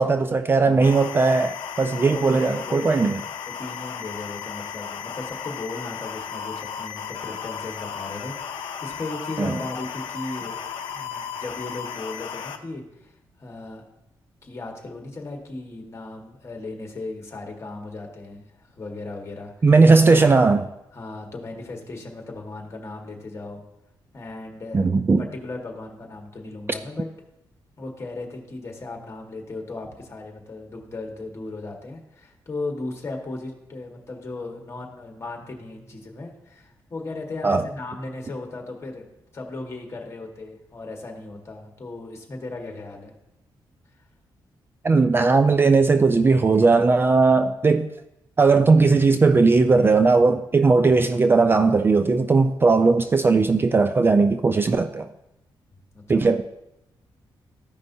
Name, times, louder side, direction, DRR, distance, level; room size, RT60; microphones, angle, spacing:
voice 1, 0.0-3.2 9.4-9.5 19.6-20.7 24.7-25.2 37.4-37.6 44.8-47.9 48.4-55.1 56.1-56.4, right 4 dB, 25° right, 0.3 m, -18 dB
voice 2, 0.6-1.0 2.0-3.1 3.5-10.6 10.9-13.8 14.4-19.5 20.9-23.6 24.1-24.9 25.2-27.1 27.8-39.0 39.3-43.1 55.9-56.3, left 2 dB, 35° left, 1.5 m, -36 dB
sound 1, 0.8-12.6, left 7 dB, 85° left, 0.6 m, -35 dB
14.0 x 5.3 x 2.7 m
cardioid pair, 120°, 8 cm